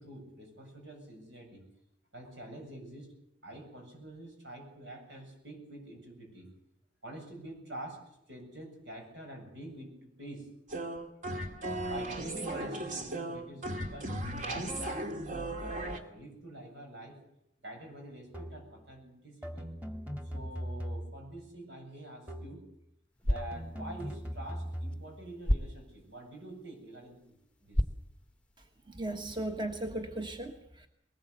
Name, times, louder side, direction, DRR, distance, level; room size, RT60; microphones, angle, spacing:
voice 1, 0.0-1.7 2.1-3.1 3.4-6.5 7.0-10.5 11.9-14.2 14.5-17.2 17.6-19.7 20.2-22.7 23.2-27.8, right 1 dB, 80° right, 3 dB, 7.7 m, -46 dB
sound 1, 10.7-16.0, right 1 dB, 45° right, 2.1 m, -36 dB
sound 2, 18.3-18.8 19.4-21.4 22.3-22.7 23.4-25.1, equal, 10° right, 2.0 m, -40 dB
sound 3, 23.1-29.1, equal, 5° left, 0.9 m, -36 dB
voice 2, 28.9-30.9, right 1 dB, 25° right, 5 dB, 1.4 m, -37 dB
21.5 x 19.5 x 8.2 m, 0.78 s
head